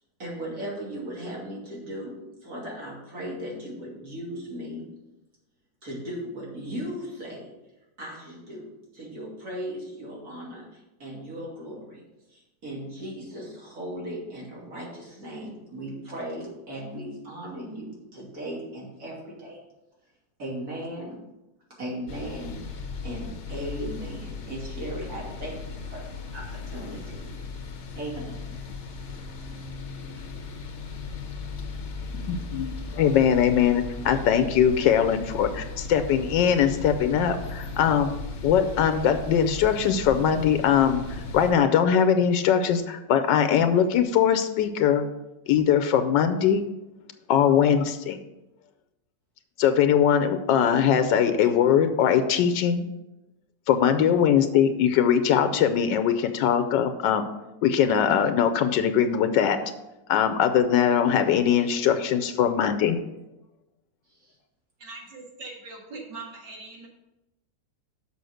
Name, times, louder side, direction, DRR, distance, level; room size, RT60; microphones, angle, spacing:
voice 1, 0.2-4.9 5.8-7.5 8.0-12.0 12.3-19.6 20.4-21.2 21.8-22.6 23.0-25.6 25.9-26.0 26.3-27.2 28.0-28.6 36.6-36.7 64.1-64.3, equal, 55° right, -4 dB, 3.2 m, -37 dB
sound 1, 22.1-41.5, left 3 dB, 50° left, 0.9 m, -37 dB
voice 2, 32.2-38.1 38.4-45.0 45.5-46.7 47.3-48.2 49.6-52.9 53.7-57.3 57.6-59.6 60.1-63.0, left 8 dB, 85° left, 9 dB, 1.3 m, -21 dB
voice 3, 64.8-66.9, right 3 dB, 85° right, -1 dB, 2.6 m, -41 dB
6.9 x 5.7 x 6.4 m, 0.96 s
omnidirectional pair, 1.9 m